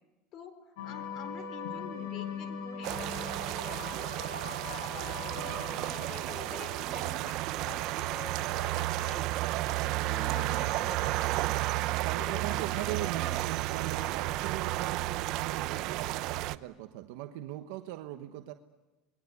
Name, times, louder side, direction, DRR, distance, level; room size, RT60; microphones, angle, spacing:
voice 1, 0.3-3.8 4.3-5.5 5.9-7.3 7.6-9.3 9.6-11.1 11.9-13.5, left 5 dB, 45° left, 10 dB, 4.0 m, -47 dB
sound 1, 0.8-15.2, left 5 dB, 75° left, 6.2 m, -44 dB
sound 2, 2.8-16.6, right 17 dB, 55° right, 0.8 m, -32 dB
voice 2, 12.0-18.5, right 16 dB, 70° right, 7 dB, 1.2 m, -39 dB
28.0 x 21.0 x 8.3 m, 1.1 s
supercardioid pair, 135°, 0 cm